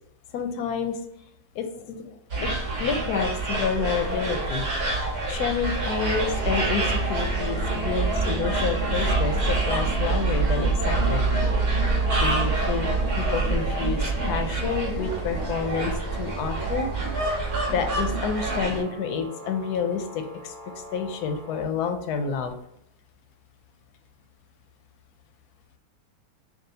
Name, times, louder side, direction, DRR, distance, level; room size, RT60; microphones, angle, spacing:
voice 1, 0.3-1.0 1.5-2.5 2.8-4.6 5.3-11.2 12.2-12.9 13.1-16.9 17.7-20.5 20.9-22.5, left 6 dB, 90° left, 6 dB, 1.1 m, -29 dB
sound 1, 2.3-18.8, right 2 dB, 70° right, 1.7 m, -27 dB
sound 2, 5.8-21.6, right 3 dB, 45° right, 1.4 m, -31 dB
6.1 x 2.3 x 2.7 m, 0.78 s
omnidirectional pair, 1.7 m